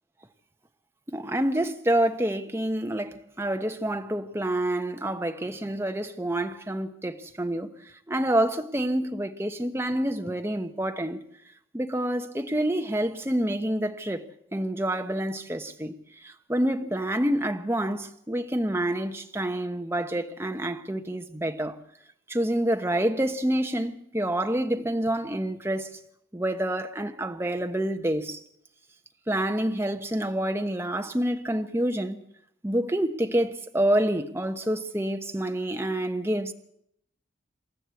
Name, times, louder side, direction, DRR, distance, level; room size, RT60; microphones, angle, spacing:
voice 1, 1.1-7.7 8.1-11.2 11.7-14.2 14.5-15.9 16.2-21.8 22.3-25.9 26.3-28.4 29.3-32.2 32.6-36.5, right 1 dB, 15° right, 1.1 m, -27 dB
27.5 x 13.5 x 8.3 m
head